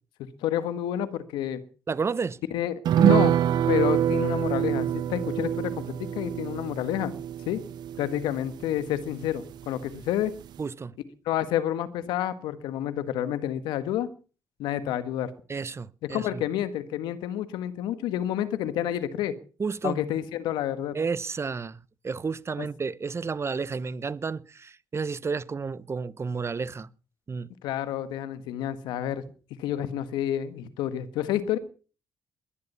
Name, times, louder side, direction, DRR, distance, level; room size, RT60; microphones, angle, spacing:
voice 1, 0.4-1.6 2.5-3.4 3.7-5.8 6.1-7.1 7.5-7.6 8.0-10.3 11.2-14.1 14.6-15.3 16.1-19.3 19.8-21.0 22.6-22.7 27.6-29.2 29.6-31.6, left 11 dB, 85° left, 1.5 m, -29 dB
voice 2, 1.9-2.4 10.6-10.9 15.5-16.4 19.6-20.0 20.9-26.9 27.3-27.5, right 5 dB, 35° right, 0.9 m, -31 dB
sound 1, 2.9-9.6 9.9-10.0 10.4-10.6, right 10 dB, 70° right, 0.7 m, -26 dB
21.0 x 11.0 x 5.6 m
supercardioid pair, 60°, 8 cm